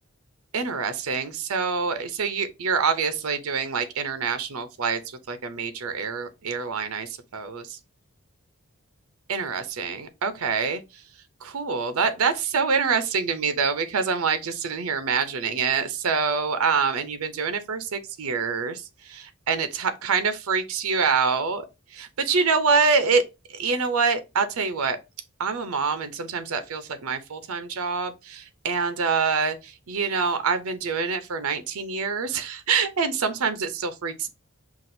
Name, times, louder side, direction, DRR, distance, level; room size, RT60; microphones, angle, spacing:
voice 1, 0.5-5.0 5.3-7.8 9.3-10.8 11.4-21.6 21.9-23.2 23.5-25.0 25.4-34.3, right 5 dB, 80° right, 0.6 m, -26 dB
5.8 x 2.4 x 2.6 m
head